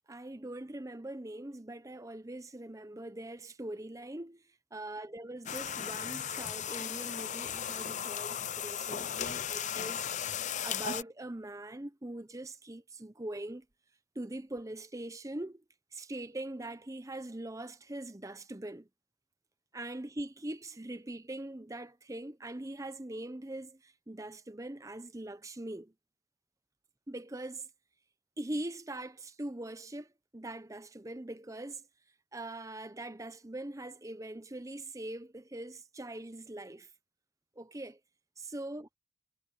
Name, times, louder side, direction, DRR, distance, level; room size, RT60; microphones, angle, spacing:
voice 1, 0.1-13.7 14.1-15.6 15.9-18.9 19.7-25.9 27.1-27.7 28.4-31.9 32.3-36.9 37.6-38.0 38.4-38.9, right 1 dB, 15° right, 0.7 m, -42 dB
sound 1, 5.4-11.0, left 9 dB, 35° left, 0.6 m, -36 dB
head